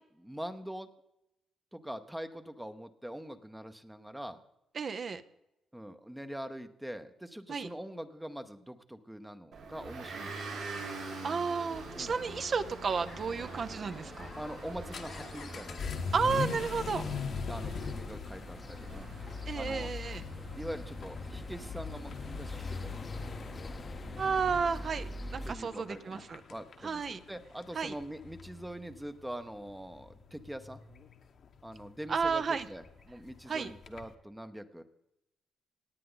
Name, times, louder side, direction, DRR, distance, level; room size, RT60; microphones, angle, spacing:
voice 1, 0.2-0.9 1.7-4.4 5.7-10.6 12.0-12.2 14.4-16.1 17.0-19.1 19.5-19.9 20.6-22.5 22.8-23.1 25.4-26.2 26.5-30.8 31.6-34.8, equal, 5° right, 8 dB, 0.8 m, -43 dB
voice 2, 4.7-5.2 7.5-7.7 11.2-14.3 16.1-17.0 19.5-20.2 24.2-26.4 26.8-27.2 27.7-27.9 32.1-32.7 33.5-33.7, right 5 dB, 45° right, 11 dB, 0.8 m, -32 dB
Motor vehicle (road) / Engine, 9.5-23.7, right 4 dB, 75° right, 5.7 m, -46 dB
sound 1, 11.7-25.5, left 2 dB, 25° left, 0.8 m, -45 dB
Vehicle / Accelerating revving vroom, 14.3-34.1, left 5 dB, 55° left, 1.2 m, -42 dB
17.5 x 9.2 x 3.9 m, 0.88 s
cardioid pair, 90°, 0 cm